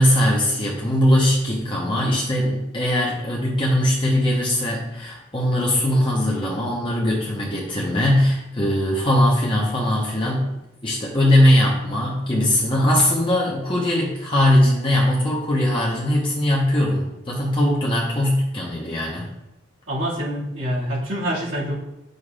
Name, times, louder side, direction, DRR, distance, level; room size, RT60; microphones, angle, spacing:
voice 1, 0.0-10.5 10.8-19.3, left 1 dB, 25° left, -4 dB, 0.9 m, -20 dB
voice 2, 19.9-21.7, equal, 85° right, -6 dB, 2.1 m, -26 dB
9.2 x 6.5 x 2.4 m, 0.91 s
head